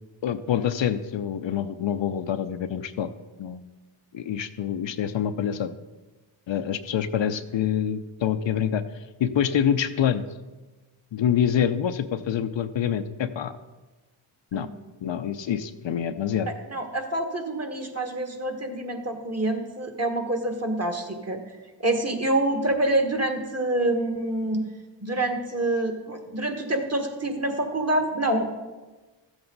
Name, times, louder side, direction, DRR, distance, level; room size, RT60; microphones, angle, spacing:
voice 1, 0.2-3.1 3.4-3.7 4.1-5.8 6.5-10.2 11.1-13.6 14.5-14.7 15.0-16.5, left 9 dB, 65° left, 10 dB, 0.7 m, -26 dB
voice 2, 16.7-21.4 21.8-24.6 25.0-28.5, right 1 dB, 30° right, 4 dB, 1.8 m, -26 dB
13.5 x 7.9 x 4.0 m, 1.2 s
cardioid pair, 60°, 50 cm